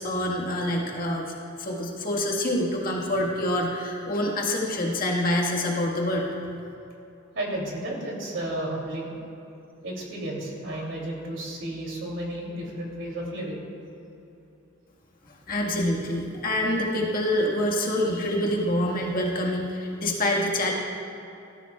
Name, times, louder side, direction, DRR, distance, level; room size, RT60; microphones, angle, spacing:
voice 1, 0.0-1.3 1.6-6.3 15.5-20.7, left 1 dB, 45° left, -2 dB, 1.7 m, -26 dB
voice 2, 7.3-9.1 9.8-13.6, right 1 dB, 70° right, -2 dB, 3.0 m, -32 dB
18.5 x 13.0 x 2.4 m, 2.9 s
head